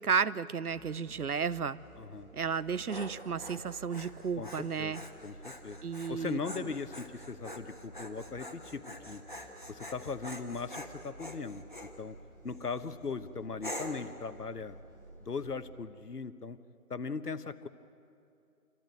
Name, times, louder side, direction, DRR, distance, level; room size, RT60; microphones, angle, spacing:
voice 1, 0.0-1.8 2.3-5.0 5.8-6.7, right 6 dB, 75° right, 17 dB, 0.8 m, -33 dB
sound 1, 0.7-15.6, right 2 dB, 5° left, 2.6 m, -54 dB
voice 2, 2.0-2.3 4.4-5.8 6.1-9.2 9.7-12.2 12.4-14.8 15.2-16.6 16.9-17.7, left 4 dB, 85° left, 12 dB, 1.2 m, -39 dB
Dog, 2.5-11.9 12.5-12.9 13.6-14.1, left 1 dB, 35° left, 1.3 m, -45 dB
27.0 x 14.0 x 9.1 m, 2.6 s
figure-of-eight pair, 180°, 45 cm